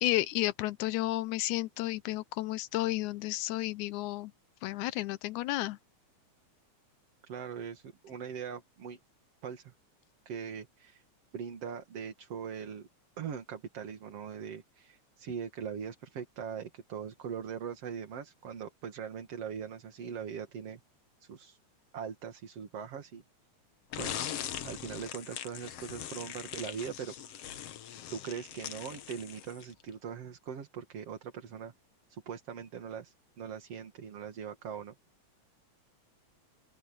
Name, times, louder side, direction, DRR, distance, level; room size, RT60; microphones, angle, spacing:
voice 1, 0.0-4.3 4.6-5.8, left 17 dB, 80° left, 2.0 m, -32 dB
voice 2, 7.2-9.0 9.4-9.7 10.3-11.0 11.3-12.9 13.2-20.8 21.2-21.6 21.9-23.2 24.0-24.3 24.6-27.5 28.1-31.7 32.1-34.9, right 7 dB, 55° right, 3.0 m, -41 dB
sound 1, 23.9-29.8, left 10 dB, 65° left, 1.9 m, -41 dB
open air
omnidirectional pair, 3.5 m